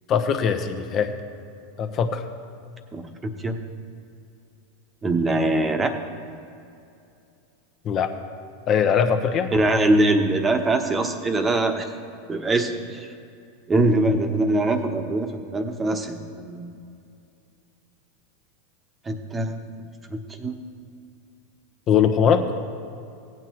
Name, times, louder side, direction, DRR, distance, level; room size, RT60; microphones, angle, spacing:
voice 1, 0.1-1.1 1.8-2.2 7.8-8.1 8.7-9.5 21.9-22.5, left 7 dB, 40° left, 6 dB, 1.0 m, -21 dB
voice 2, 2.9-3.6 5.0-5.9 9.5-11.9 12.3-13.1 13.7-16.8 19.1-19.6 20.1-20.6, right 2 dB, 20° right, 5 dB, 1.1 m, -23 dB
17.0 x 9.2 x 3.1 m, 2.6 s
hypercardioid pair, 95°, 0 cm